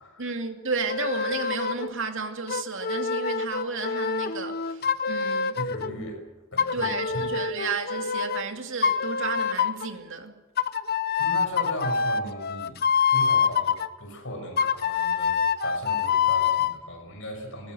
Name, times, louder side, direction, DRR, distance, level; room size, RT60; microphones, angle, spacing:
voice 1, 0.2-5.6 6.7-10.3, right 4 dB, 60° right, 2.4 m, -32 dB
sound 1, 0.9-1.9 2.5-5.9 6.6-8.4 8.8-9.9 10.6-13.9 14.6-16.8, left 6 dB, 45° left, 0.9 m, -26 dB
voice 2, 5.6-6.2 6.5-6.9 11.2-12.8 13.1-17.7, equal, 60° left, 6.3 m, -37 dB
20.5 x 20.0 x 7.9 m
head